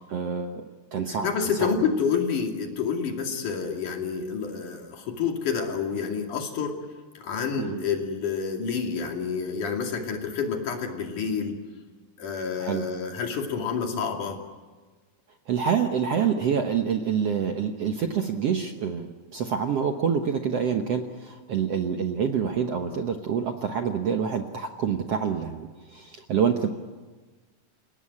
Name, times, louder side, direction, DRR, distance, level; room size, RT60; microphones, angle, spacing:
voice 1, 0.1-0.6 0.9-1.3 1.6-1.8 7.6-7.8 12.6-12.8 15.5-26.7, right 7 dB, 60° right, 5 dB, 1.7 m, -27 dB
voice 2, 1.1-6.7 7.2-11.6 12.2-14.4, left 6 dB, 65° left, 2 dB, 4.0 m, -28 dB
29.5 x 17.5 x 9.8 m, 1.3 s
omnidirectional pair, 4.0 m